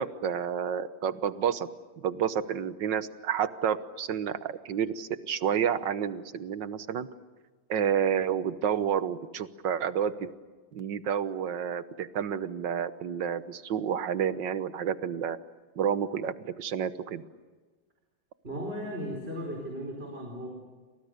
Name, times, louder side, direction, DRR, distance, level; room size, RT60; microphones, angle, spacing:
voice 1, 0.0-1.7 2.0-7.1 7.7-10.3 10.7-15.4 15.8-17.2, right 8 dB, 80° right, 13 dB, 1.8 m, -30 dB
voice 2, 18.4-20.5, equal, 30° right, 1 dB, 5.0 m, -36 dB
29.5 x 26.5 x 6.7 m, 1.3 s
omnidirectional pair, 2.0 m